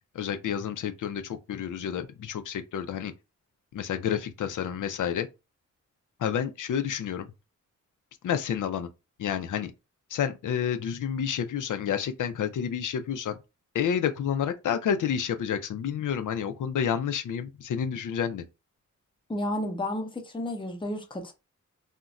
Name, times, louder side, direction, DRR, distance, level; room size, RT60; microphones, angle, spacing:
voice 1, 0.1-3.1 3.7-5.3 6.2-7.3 8.2-8.9 9.2-9.7 10.1-13.4 13.7-18.5, left 8 dB, 85° left, 0.5 m, -29 dB
voice 2, 19.3-21.3, left 1 dB, 15° left, 0.5 m, -32 dB
2.4 x 2.1 x 4.0 m
wide cardioid pair, 175°, 30 cm